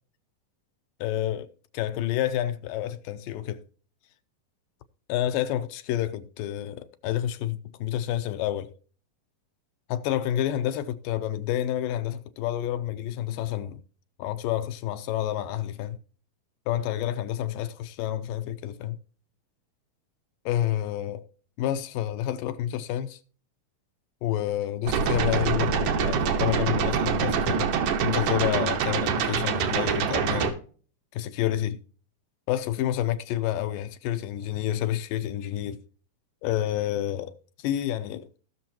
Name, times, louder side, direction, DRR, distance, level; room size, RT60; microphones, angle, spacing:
voice 1, 1.0-3.6 5.1-8.7 9.9-13.8 14.2-16.0 16.7-19.0 20.5-21.2 21.6-23.2 24.2-27.7 28.0-30.6 31.1-31.8 32.5-35.8 36.4-38.3, left 12 dB, 80° left, 2.2 m, -29 dB
sound 1, 24.9-30.5, right 6 dB, 65° right, 2.4 m, -25 dB
18.0 x 6.4 x 2.9 m
omnidirectional pair, 4.1 m